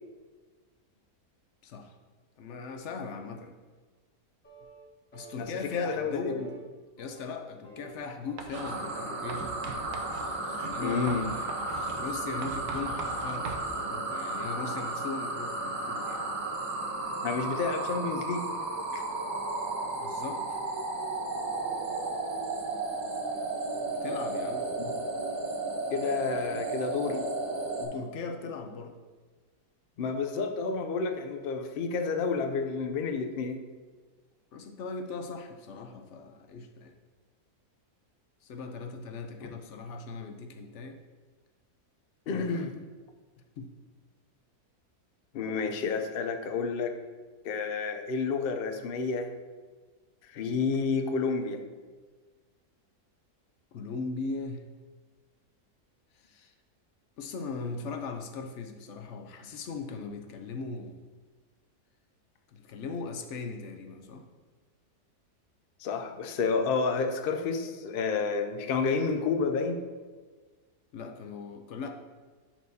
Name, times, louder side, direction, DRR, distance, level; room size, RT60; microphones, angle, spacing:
voice 1, 1.6-1.9 2.4-3.5 5.1-6.4 7.0-9.5 10.6-16.2 19.9-20.6 24.0-24.6 26.5-26.7 27.1-27.3 27.8-29.0 34.5-36.9 38.4-41.0 42.3-42.7 43.6-43.7 53.7-54.6 56.1-56.5 57.2-61.0 62.5-64.2 70.9-71.9, left 4 dB, 60° left, 5 dB, 0.8 m, -39 dB
sound 1, 4.4-4.9 5.1-5.4 5.7-6.1 6.4-6.6 7.0-8.0 8.2-9.2, right 3 dB, 30° left, 1.4 m, -50 dB
voice 2, 5.4-6.4 10.8-11.3 17.2-18.5 18.9-19.0 24.8-25.0 25.9-27.2 30.0-33.6 42.3-42.7 45.3-47.0 47.4-49.3 50.2-51.6 65.8-69.8, left 5 dB, 85° left, 6 dB, 0.5 m, -30 dB
Writing, 8.4-8.8 9.3-13.7, right 4 dB, 85° right, 1.2 m, -42 dB
sound 2, 8.5-27.8, right 2 dB, 65° right, 1.5 m, -33 dB
10.5 x 4.5 x 2.7 m, 1.4 s
omnidirectional pair, 1.6 m